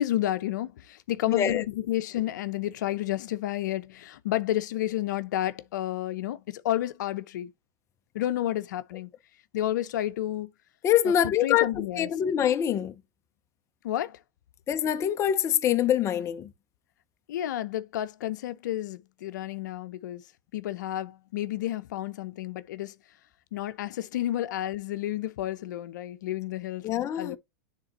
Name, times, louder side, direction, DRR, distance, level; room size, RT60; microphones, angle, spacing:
voice 1, 0.0-7.5 8.1-9.1 9.5-10.5 11.2-12.1 13.8-14.2 17.3-20.2 20.5-22.9 23.5-26.9 27.2-27.4, left 13 dB, 75° left, 0.6 m, -31 dB
voice 2, 1.3-1.6 10.8-11.7 12.0-12.9 14.7-16.5 26.8-27.4, left 10 dB, 30° left, 0.6 m, -24 dB
9.8 x 3.7 x 2.9 m
hypercardioid pair, 120°, 10 cm